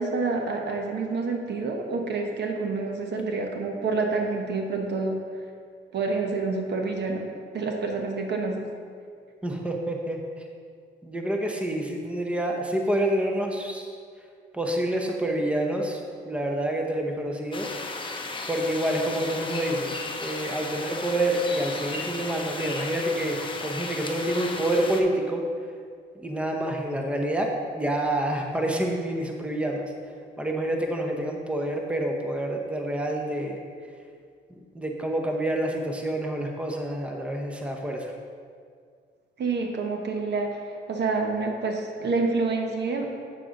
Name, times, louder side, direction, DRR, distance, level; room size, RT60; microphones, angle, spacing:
voice 1, 0.0-5.2 5.9-7.2 7.5-8.6 39.4-40.6 40.9-43.1, right 3 dB, 60° right, 2 dB, 1.1 m, -28 dB
voice 2, 9.4-10.2 11.0-13.9 14.5-17.7 18.0-18.1 18.5-25.4 26.1-29.9 30.4-33.6 34.5-38.1, right 1 dB, 5° right, 1 dB, 0.9 m, -28 dB
sound 1, 17.5-25.0, left 3 dB, 25° left, 0.7 m, -35 dB
7.6 x 6.7 x 3.8 m, 2.1 s
cardioid pair, 90°, 20 cm